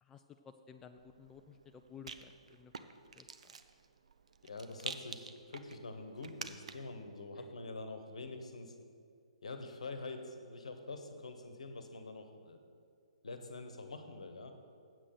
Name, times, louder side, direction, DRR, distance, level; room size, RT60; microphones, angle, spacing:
voice 1, 0.0-2.7 3.1-3.6 7.4-7.5, left 6 dB, 10° left, 6 dB, 0.3 m, -55 dB
Rattle, 0.9-7.0, right 5 dB, 65° right, 0.6 m, -49 dB
voice 2, 4.4-8.7 9.4-12.6 13.2-14.5, left 3 dB, 65° left, 7 dB, 1.1 m, -46 dB
7.9 x 7.4 x 6.6 m, 2.2 s
figure-of-eight pair, 130°, 4 cm